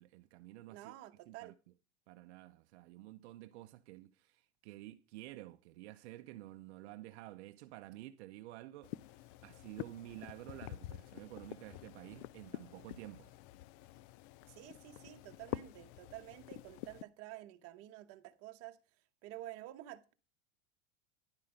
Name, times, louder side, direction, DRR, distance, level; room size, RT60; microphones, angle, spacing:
voice 1, 0.0-0.9 1.3-1.5 2.1-13.3, right 16 dB, 70° right, 0.6 m, -51 dB
voice 2, 0.7-1.6 14.5-18.8 19.2-20.1, right 15 dB, 45° right, 1.1 m, -50 dB
sound 1, 8.8-17.0, left 15 dB, 50° left, 0.4 m, -48 dB
10.5 x 5.7 x 5.0 m
supercardioid pair, 145°, 34 cm